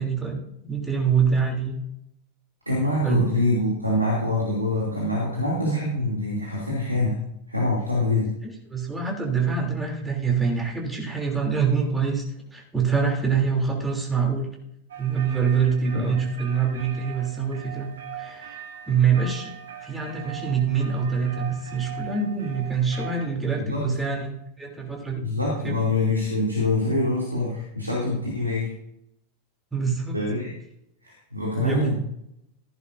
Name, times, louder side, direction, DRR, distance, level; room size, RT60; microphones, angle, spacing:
voice 1, 0.0-1.8 3.0-3.2 8.7-12.2 12.5-14.5 15.0-19.5 19.8-24.3 24.6-25.2 25.6-25.7 29.7-30.2 31.6-31.9, right 6 dB, 10° right, -1 dB, 3.2 m, -25 dB
voice 2, 2.7-7.2 7.5-8.3 15.9-16.2 23.5-24.0 25.2-28.7 30.1-30.5 31.0-32.0, left 2 dB, 85° right, -4 dB, 2.8 m, -25 dB
sound 1, 14.9-23.3, right 9 dB, 65° right, 1.7 m, -41 dB
15.5 x 10.5 x 2.7 m, 0.79 s
figure-of-eight pair, 90°, 0 cm